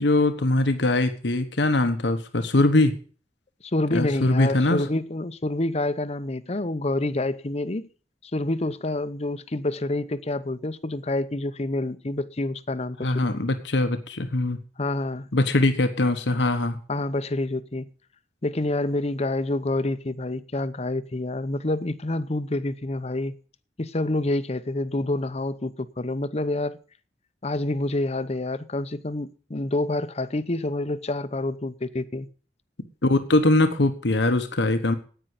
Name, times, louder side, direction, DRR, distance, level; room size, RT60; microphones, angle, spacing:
voice 1, 0.0-2.9 3.9-4.8 13.0-14.6 15.3-16.8 33.0-34.9, left 2 dB, 85° left, 1.2 m, -22 dB
voice 2, 3.7-7.9 8.2-13.4 14.8-15.3 16.9-17.9 18.4-23.3 23.8-26.8 27.4-32.3, left 2 dB, 35° left, 0.8 m, -27 dB
10.0 x 9.1 x 8.1 m
head